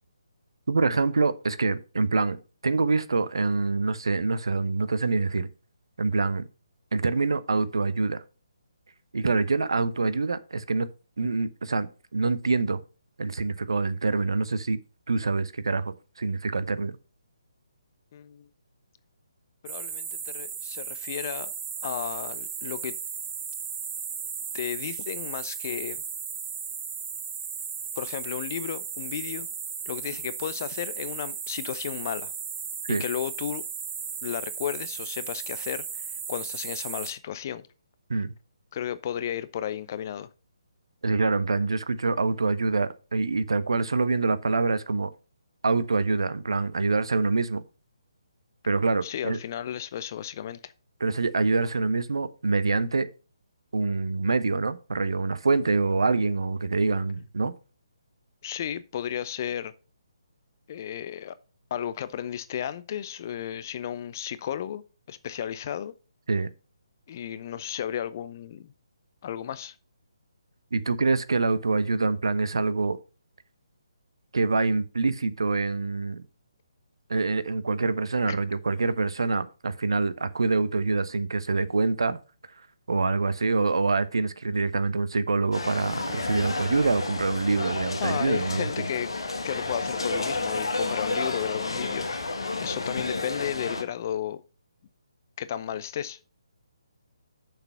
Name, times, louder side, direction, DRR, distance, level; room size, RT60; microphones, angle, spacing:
voice 1, 0.7-2.4 2.6-5.5 6.0-6.4 6.9-8.2 9.1-10.9 11.2-12.8 13.2-14.8 15.1-17.0 32.9-33.0 38.1-38.3 41.0-45.1 45.6-47.6 48.6-49.4 51.0-53.1 53.7-57.5 66.3-66.5 70.7-73.0 74.3-76.2 77.1-82.2 82.9-88.8, right 3 dB, 65° right, 0.8 m, -25 dB
voice 2, 18.1-18.5 19.6-21.5 21.8-23.0 24.5-26.0 28.0-29.5 29.9-32.3 32.9-33.6 34.2-37.6 38.7-40.3 49.0-50.7 58.4-59.7 60.7-61.4 61.7-64.8 65.1-65.9 67.1-68.7 69.2-69.8 78.3-78.4 88.0-89.1 89.4-92.1 92.6-94.4 95.4-96.2, left 10 dB, 35° left, 0.6 m, -33 dB
sound 1, 19.7-37.1, right 7 dB, 25° right, 2.1 m, -35 dB
sound 2, 85.5-93.8, left 3 dB, 70° left, 1.5 m, -31 dB
6.8 x 6.0 x 5.4 m
figure-of-eight pair, 140°, 3 cm